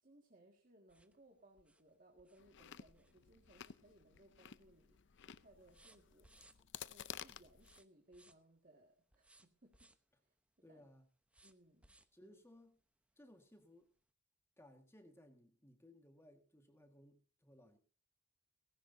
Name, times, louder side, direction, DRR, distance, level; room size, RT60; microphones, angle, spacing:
voice 1, 0.0-5.0 5.4-6.5 6.8-9.9 10.2-10.3 10.7-10.9 11.4-11.9 12.2-12.4, right 1 dB, 40° right, 2 dB, 1.9 m, -66 dB
sound 1, 0.9-4.3 4.6-5.0 5.2-6.9 7.5-8.6 9.1-10.1 11.3-12.2 12.8-12.9 13.3-13.4, right 2 dB, 5° right, 0.9 m, -68 dB
Chewing mastication, 2.4-7.8, left 9 dB, 55° left, 0.6 m, -54 dB
voice 2, 10.6-11.1 12.1-12.8 13.1-13.9 14.6-17.8, left 1 dB, 10° left, 5 dB, 1.7 m, -63 dB
19.0 x 16.5 x 2.7 m, 0.35 s
head